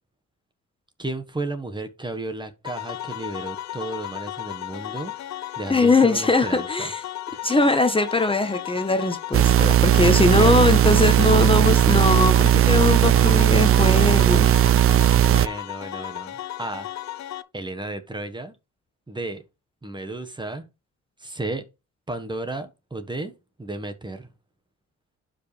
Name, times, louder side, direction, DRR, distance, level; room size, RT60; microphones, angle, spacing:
voice 1, 1.0-5.1 5.6-6.9 7.3-7.4 10.2-10.8 15.2-16.9 17.5-18.5 19.1-19.4 19.8-20.6 21.2-21.6 22.1-23.3 23.6-24.3, right 2 dB, 15° right, 1.5 m, -33 dB
sound 1, 2.6-17.4, left 13 dB, 65° left, 0.9 m, -34 dB
voice 2, 5.7-7.0 7.4-14.8, left 3 dB, 20° left, 1.2 m, -21 dB
sound 2, 9.3-15.5, right 11 dB, 50° right, 0.5 m, -17 dB
11.5 x 5.1 x 3.4 m
cardioid pair, 90°, 30 cm